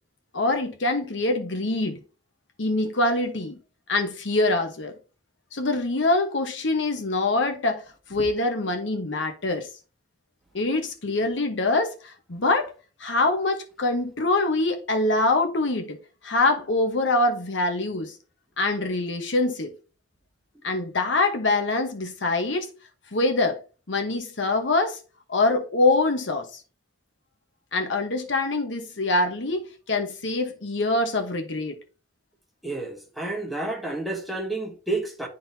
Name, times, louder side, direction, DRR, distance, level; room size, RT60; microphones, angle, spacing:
voice 1, 0.3-2.0 2.6-3.6 3.9-4.9 5.5-7.8 8.1-9.7 10.5-12.7 13.0-16.0 16.2-18.1 18.6-19.7 20.6-22.7 23.1-23.6 23.9-25.0 25.3-26.6 27.7-31.8, left 2 dB, 75° left, 1.1 m, -24 dB
voice 2, 32.6-35.3, right 2 dB, ahead, 1.3 m, -30 dB
11.0 x 3.9 x 2.8 m
head